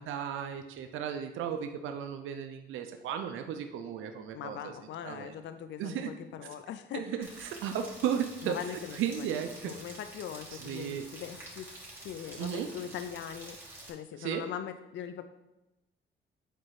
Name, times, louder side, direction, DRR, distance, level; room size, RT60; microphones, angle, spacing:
voice 1, 0.0-4.7 5.0-5.3 5.8-6.1 6.9-8.5 8.9-9.7 10.5-11.0 12.4-12.7 14.2-14.4, right 8 dB, 80° right, 6 dB, 0.6 m, -35 dB
voice 2, 4.3-7.3 8.4-11.7 12.0-13.6 13.8-15.2, left 9 dB, 65° left, 10 dB, 0.5 m, -41 dB
Rain, 7.2-13.9, right 1 dB, 10° right, 2.9 m, -48 dB
9.1 x 4.3 x 4.7 m, 0.98 s
cardioid pair, 90°, 20 cm